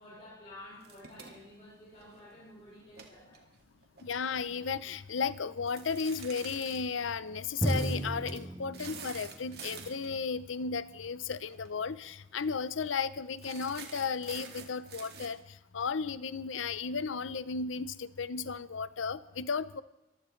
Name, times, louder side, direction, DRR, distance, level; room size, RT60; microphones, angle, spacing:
voice 1, 0.0-3.5, left 1 dB, 35° left, -8 dB, 7.2 m, -51 dB
sound 1, 0.8-2.3 2.8-4.4 5.7-6.8 7.6-8.0 8.3-8.4 8.7-10.2 11.4-11.7 12.0-12.1 12.4-12.7 13.4-15.3, right 6 dB, 60° right, 2.0 m, -48 dB
voice 2, 4.0-15.4 15.7-19.8, left 5 dB, 90° left, 15 dB, 0.7 m, -34 dB
Drum, 7.6-11.1, right 1 dB, 10° right, 0.4 m, -35 dB
24.0 x 15.5 x 3.2 m, 0.93 s
head